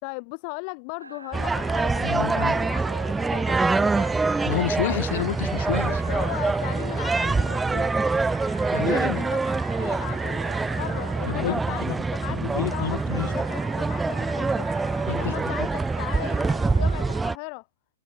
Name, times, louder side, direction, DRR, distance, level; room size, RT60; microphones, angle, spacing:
voice 1, 0.0-4.2 5.9-8.0 8.7-9.4 9.8-14.7 15.2-17.7, left 40 dB or more, 40° left, 3.6 m, -37 dB
sound 1, 1.0-17.2, right 2 dB, 90° right, 3.0 m, -43 dB
sound 2, 1.3-17.3, right 3 dB, 10° right, 0.8 m, -25 dB
voice 2, 2.0-2.5 4.5-5.9 8.7-9.2 11.3-11.6 11.9-12.0 12.4-13.3 15.1-15.3, left 12 dB, 55° left, 4.7 m, -29 dB
figure-of-eight pair, 115°, 0 cm